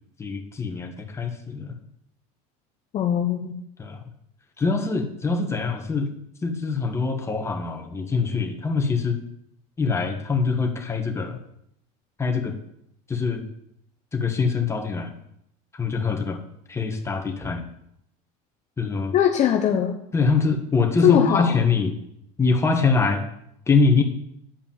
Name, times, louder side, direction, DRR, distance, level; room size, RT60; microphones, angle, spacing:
voice 1, 0.2-1.8 3.8-4.0 4.6-6.1 6.4-9.2 9.8-11.4 12.2-12.5 13.1-13.4 14.1-15.1 15.7-16.4 16.7-17.6 18.8-19.1 20.1-22.0 22.4-23.2 23.7-24.0, left 4 dB, 15° left, 3 dB, 1.4 m, -23 dB
voice 2, 2.9-3.5 19.1-19.9 21.0-21.6, left 9 dB, 40° left, 3 dB, 0.9 m, -20 dB
10.0 x 5.2 x 7.3 m, 0.77 s
cardioid pair, 140°, 18 cm